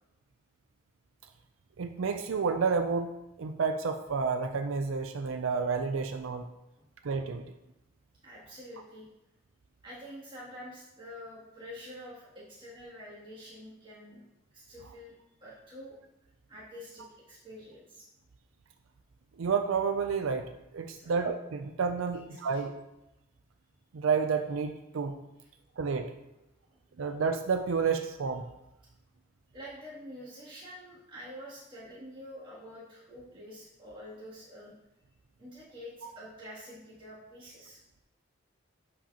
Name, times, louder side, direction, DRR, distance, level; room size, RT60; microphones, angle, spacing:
voice 1, 1.8-3.1 3.4-6.4 7.0-7.4 19.4-22.7 23.9-25.2 25.8-26.1 27.0-28.4, right 5 dB, 85° right, 7 dB, 0.5 m, -30 dB
voice 2, 8.2-9.1 9.8-14.2 14.5-15.1 15.4-16.0 16.5-18.1 20.9-21.2 22.1-22.6 26.7-26.8 29.5-34.7 35.4-37.8, equal, 25° right, -8 dB, 2.6 m, -47 dB
11.0 x 4.9 x 2.9 m, 0.93 s
head